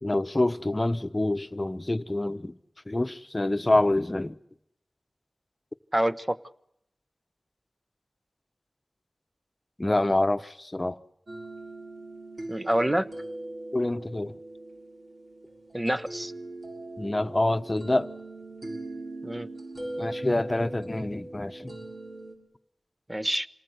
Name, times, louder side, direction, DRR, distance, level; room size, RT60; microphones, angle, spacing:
voice 1, 0.0-2.6 2.9-4.4 9.8-11.0 13.7-14.4 17.0-18.1 20.0-21.8, left 2 dB, 30° left, 1.0 m, -26 dB
voice 2, 5.9-6.4 12.5-13.1 15.7-16.3 19.2-19.5 23.1-23.5, right 1 dB, 20° right, 1.1 m, -26 dB
sound 1, 11.3-22.4, right 2 dB, 60° right, 6.4 m, -40 dB
27.0 x 19.0 x 8.0 m
cardioid pair, 45°, 0 cm